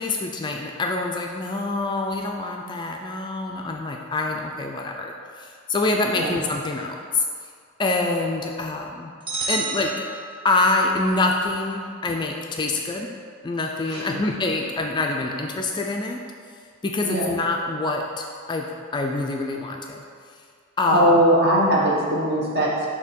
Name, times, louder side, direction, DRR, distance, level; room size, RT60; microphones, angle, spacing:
voice 1, 0.0-7.2 7.8-9.1 9.5-10.1 10.4-13.1 13.4-16.2 16.8-18.7 18.9-20.0 20.8-21.2, left 2 dB, 20° left, 1 dB, 0.3 m, -25 dB
sound 1, 9.3-10.8, right 4 dB, 25° right, 0.7 m, -30 dB
voice 2, 20.9-22.9, right 1 dB, 50° right, -5 dB, 1.2 m, -20 dB
6.6 x 2.8 x 5.2 m, 2.1 s
head